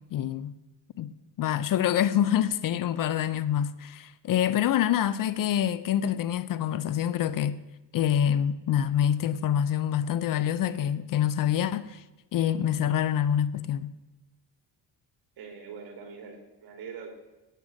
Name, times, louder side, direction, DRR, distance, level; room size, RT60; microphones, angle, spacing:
voice 1, 0.1-0.5 1.0-7.6 7.9-12.0 12.3-13.9, left 10 dB, 55° left, 0.6 m, -26 dB
voice 2, 15.4-17.1, right 6 dB, 60° right, 3.1 m, -43 dB
17.0 x 7.7 x 6.3 m
cardioid pair, 150°, 41 cm